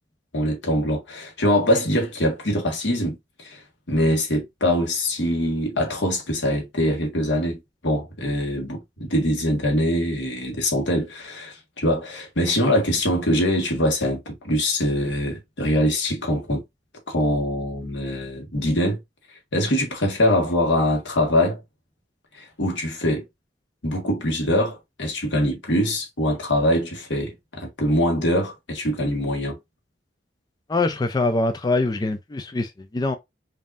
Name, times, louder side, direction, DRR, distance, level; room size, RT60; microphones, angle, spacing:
voice 1, 0.3-3.6 3.9-16.6 17.1-19.0 19.5-21.6 22.3-23.2 23.8-29.6, left 1 dB, 85° left, 1.6 m, -23 dB
voice 2, 30.7-33.2, left 2 dB, 25° left, 0.4 m, -23 dB
5.2 x 2.7 x 2.5 m
head